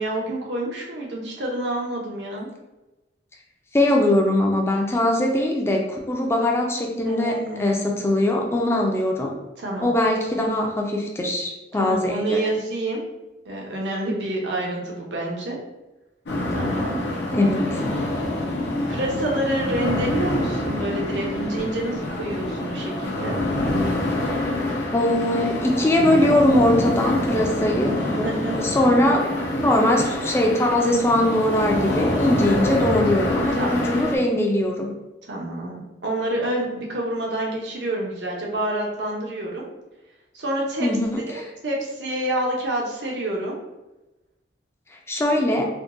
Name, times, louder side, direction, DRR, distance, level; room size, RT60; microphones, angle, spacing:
voice 1, 0.0-2.5 7.0-7.8 9.6-9.9 11.7-13.1 13.4-15.6 16.5-17.0 18.9-23.4 28.2-28.6 32.8-33.1 33.6-33.9 35.3-39.6 40.3-40.9 41.3-43.6, right 1 dB, 70° right, -2 dB, 0.8 m, -28 dB
voice 2, 3.7-9.3 9.8-12.4 17.3-17.8 24.9-28.3 28.5-29.2 29.5-34.9 40.8-41.4 45.1-45.7, left 1 dB, 15° left, 1 dB, 0.4 m, -21 dB
sound 1, 16.3-34.2, left 1 dB, 65° left, 0.7 m, -26 dB
3.6 x 2.2 x 2.5 m, 1.0 s
head